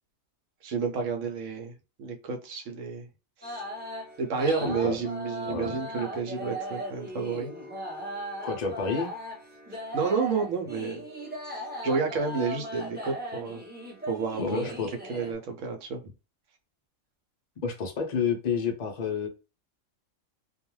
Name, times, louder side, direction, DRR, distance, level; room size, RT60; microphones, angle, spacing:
voice 1, 0.6-1.7 2.0-3.1 3.4-3.6 4.2-7.5 9.7-11.0 11.5-13.6 14.1-14.8 15.1-16.0, right 5 dB, 70° right, 4 dB, 0.9 m, -30 dB
sound 1, 3.4-15.3, equal, 10° right, 0.5 m, -38 dB
voice 2, 4.5-4.9 5.5-5.8 8.4-9.1 14.4-14.9 17.6-19.3, left 5 dB, 65° left, 3 dB, 0.4 m, -29 dB
2.3 x 2.2 x 3.0 m, 0.30 s
omnidirectional pair, 1.4 m